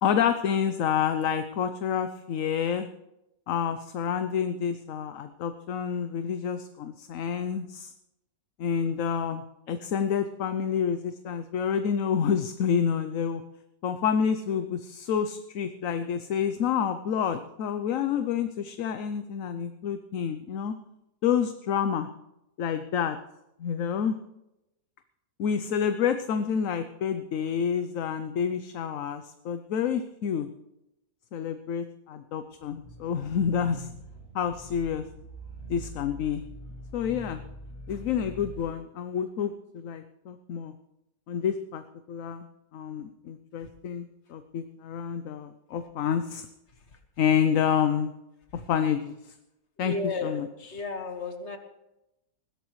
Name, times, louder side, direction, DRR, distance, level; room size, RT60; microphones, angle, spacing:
voice 1, 0.0-2.9 3.5-7.9 8.6-13.4 13.8-20.7 21.2-22.1 22.6-23.2 23.6-24.2 25.4-30.5 31.3-33.9 34.3-35.0 35.7-36.4 36.9-37.4 37.9-40.7 41.3-41.8 42.1-42.5 42.7-46.5 47.2-48.1 48.7-49.3 49.8-49.9 50.2-50.8, left 7 dB, 65° left, 9 dB, 1.0 m, -28 dB
sound 1, 32.6-38.7, right 1 dB, 10° right, 5.5 m, -44 dB
voice 2, 49.8-50.4 50.7-51.6, left 3 dB, 45° left, 5 dB, 1.8 m, -33 dB
20.5 x 16.0 x 3.2 m, 0.90 s
omnidirectional pair, 1.7 m